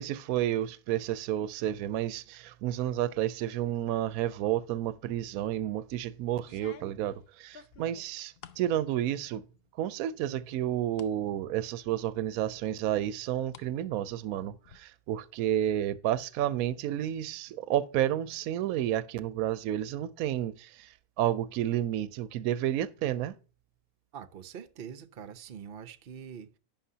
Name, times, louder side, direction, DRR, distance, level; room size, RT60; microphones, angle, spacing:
voice 1, 0.0-9.4 9.8-23.3, right 12 dB, 75° right, 1.0 m, -31 dB
sound 1, 5.4-5.8 6.4-8.7 9.1-9.7 10.0-11.2 11.6-11.7 12.5-13.7 14.0-14.8, left 6 dB, 55° left, 0.8 m, -53 dB
voice 2, 24.1-26.6, right 8 dB, 50° right, 0.7 m, -44 dB
11.5 x 8.8 x 2.8 m
omnidirectional pair, 1.6 m